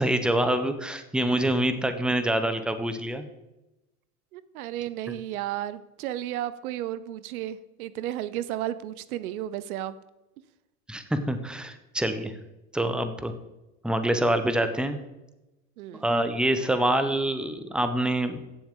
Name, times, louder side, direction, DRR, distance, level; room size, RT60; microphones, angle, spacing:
voice 1, 0.0-3.2 10.9-12.4 12.7-13.3 13.8-15.0 16.0-18.4, right 1 dB, ahead, 9 dB, 1.0 m, -26 dB
voice 2, 4.3-10.0 15.8-16.1, right 12 dB, 75° right, 16 dB, 0.7 m, -33 dB
16.5 x 7.2 x 3.9 m, 0.99 s
hypercardioid pair, 85°, 44 cm